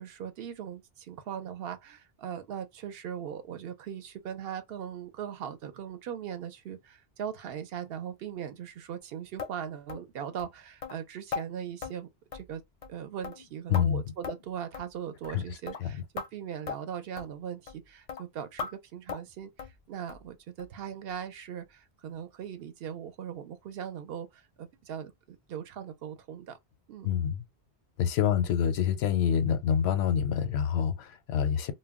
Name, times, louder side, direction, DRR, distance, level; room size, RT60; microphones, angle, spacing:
voice 1, 0.0-12.6 12.9-26.6 26.9-27.1 28.3-28.4, right 8 dB, 70° right, 0.8 m, -40 dB
sound 1, 9.4-9.5 9.9-10.1 10.4-10.5 10.8-11.0 11.3-11.5 11.8-12.0 12.3-12.6 12.8-13.0 13.2-13.9 14.2-14.5 14.7-14.9 15.2-15.4 15.7-15.8 16.2-16.3 16.7-16.8 17.2-17.3 17.7-17.8 18.1-18.2 18.6-18.7 19.1-19.3 19.6-19.8 20.1-20.3 20.6-20.7 21.1-21.2 21.6-21.7, left 6 dB, 55° left, 0.5 m, -38 dB
voice 2, 13.7-14.0 15.3-15.4 15.8-15.9 27.0-27.4 28.0-31.7, left 8 dB, 80° left, 0.8 m, -26 dB
2.2 x 2.1 x 3.4 m
omnidirectional pair, 1.1 m